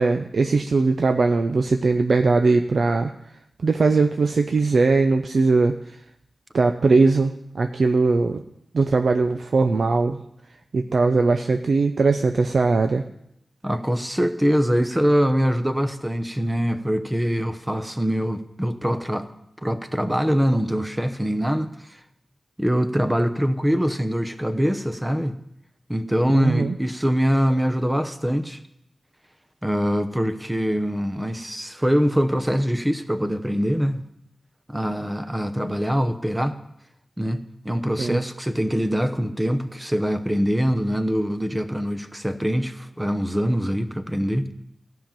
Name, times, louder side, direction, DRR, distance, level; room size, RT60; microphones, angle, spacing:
voice 1, 0.0-3.1 3.6-6.0 6.5-8.4 8.7-10.2 10.7-13.0 26.3-26.8 38.0-38.2, right 3 dB, 65° right, 6 dB, 0.6 m, -20 dB
voice 2, 13.6-19.3 19.6-21.7 22.6-25.4 25.9-28.6 29.6-34.0 34.7-36.6 37.2-44.5, equal, 10° right, 9 dB, 0.8 m, -23 dB
14.5 x 5.7 x 8.9 m, 0.79 s
wide cardioid pair, 95°, 0 cm